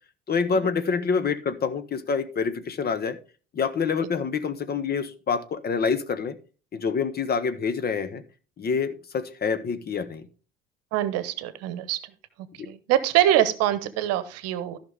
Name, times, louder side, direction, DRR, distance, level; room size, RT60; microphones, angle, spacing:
voice 1, 0.3-3.2 3.5-6.4 6.7-8.2 8.6-10.3 12.6-12.7, left 5 dB, 30° left, 12 dB, 1.1 m, -27 dB
voice 2, 10.9-12.0 12.6-14.8, right 12 dB, 55° right, 14 dB, 1.0 m, -24 dB
14.0 x 5.8 x 3.5 m, 0.36 s
figure-of-eight pair, 60°, 30 cm